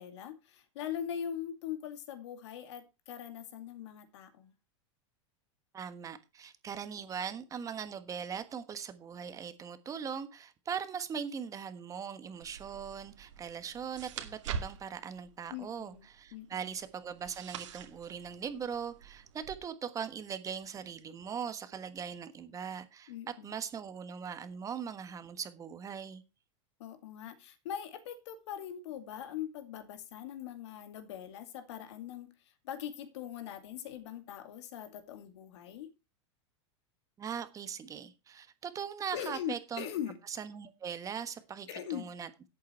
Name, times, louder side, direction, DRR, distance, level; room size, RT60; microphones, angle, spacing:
voice 1, 0.0-4.5 15.5-16.7 23.1-23.6 26.8-35.9 39.1-40.2 41.7-42.1, left 9 dB, 70° left, 2.5 m, -41 dB
voice 2, 5.7-23.1 23.4-26.2 37.2-39.8 40.3-42.3, right 7 dB, 20° right, 1.3 m, -40 dB
sound 1, 12.4-19.6, right 7 dB, 80° right, 2.4 m, -45 dB
11.5 x 8.4 x 4.4 m
supercardioid pair, 135°, 15 cm